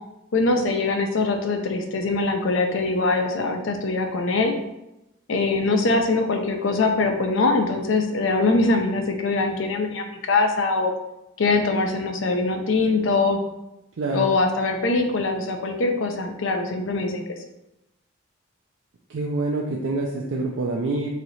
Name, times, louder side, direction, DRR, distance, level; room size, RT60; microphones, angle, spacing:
voice 1, 0.3-4.5 5.3-10.9 11.4-13.4 14.1-17.2, left 3 dB, 75° left, 4 dB, 0.5 m, -22 dB
voice 2, 14.0-14.3 19.1-21.1, right 2 dB, 85° right, -1 dB, 0.4 m, -26 dB
3.1 x 2.8 x 4.0 m, 0.92 s
head